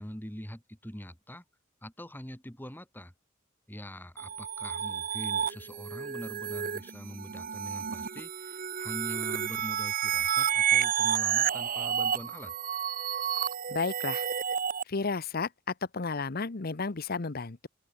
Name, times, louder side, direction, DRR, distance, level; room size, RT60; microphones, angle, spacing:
voice 1, 0.0-1.4 1.8-3.1 3.7-12.5, equal, 10° left, 3.7 m, -43 dB
sound 1, 4.2-14.8, right 8 dB, 45° right, 0.8 m, -30 dB
voice 2, 13.7-14.2 14.9-15.5 15.9-17.7, left 4 dB, 50° left, 0.9 m, -32 dB
open air
head